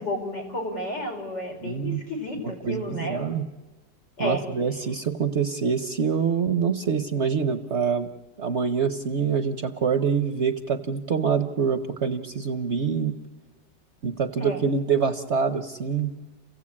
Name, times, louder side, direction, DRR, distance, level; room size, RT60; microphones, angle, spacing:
voice 1, 0.0-3.3 4.2-4.4 14.4-14.6, left 1 dB, 85° left, 3 dB, 5.0 m, -31 dB
voice 2, 1.6-2.0 2.4-3.4 4.2-8.1 8.4-13.2 14.0-16.1, right 6 dB, 50° right, 9 dB, 1.0 m, -25 dB
30.0 x 15.5 x 8.6 m, 1.2 s
omnidirectional pair, 1.9 m